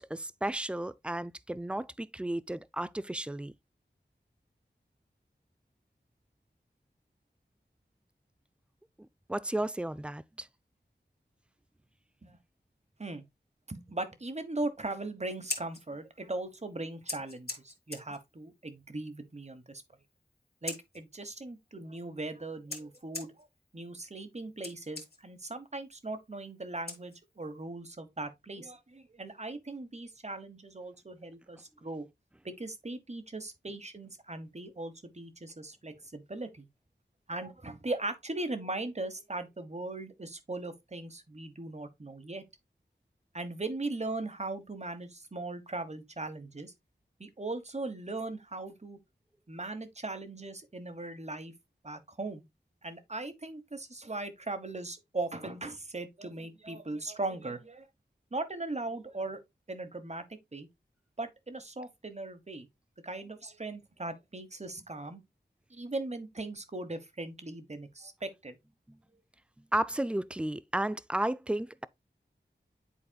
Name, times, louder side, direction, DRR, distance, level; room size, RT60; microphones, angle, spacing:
voice 1, 0.0-3.5 9.0-10.5 69.7-71.9, right 1 dB, 5° right, 0.3 m, -33 dB
voice 2, 13.7-19.8 20.6-23.5 23.7-32.1 32.4-36.7 37.3-42.4 43.3-46.7 47.2-49.0 49.5-51.5 51.8-52.4 52.8-57.9 58.3-59.4 59.7-60.7 61.2-62.7 63.0-65.2 65.7-68.6, right 2 dB, 35° right, 1.1 m, -39 dB
Scissors, 15.2-27.6, left 2 dB, 55° left, 1.6 m, -46 dB
10.0 x 4.1 x 2.2 m
wide cardioid pair, 60°, 19 cm